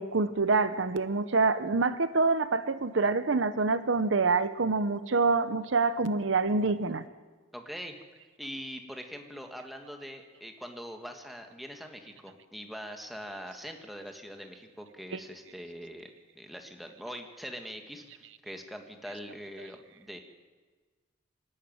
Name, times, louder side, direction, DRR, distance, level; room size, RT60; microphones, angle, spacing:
voice 1, 0.0-7.0 15.1-15.2, right 3 dB, 70° right, 13 dB, 0.8 m, -26 dB
voice 2, 7.5-8.0 8.4-16.1 16.4-20.2, equal, ahead, 4 dB, 1.7 m, -43 dB
25.5 x 11.0 x 9.5 m, 1.4 s
head